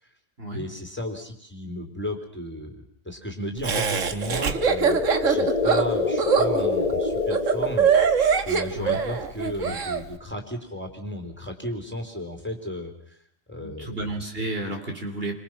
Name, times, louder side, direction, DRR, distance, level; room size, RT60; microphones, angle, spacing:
voice 1, 0.5-8.2 8.4-13.2 13.5-14.0, left 1 dB, 10° left, 3 dB, 3.7 m, -34 dB
Laughter, 3.6-10.0, right 6 dB, 85° right, 1.8 m, -23 dB
sound 1, 4.0-8.4, left 3 dB, 35° left, 1.4 m, -27 dB
voice 2, 13.6-15.4, right 2 dB, 50° right, 2 dB, 4.0 m, -32 dB
29.5 x 25.5 x 6.0 m, 0.65 s
omnidirectional pair, 1.3 m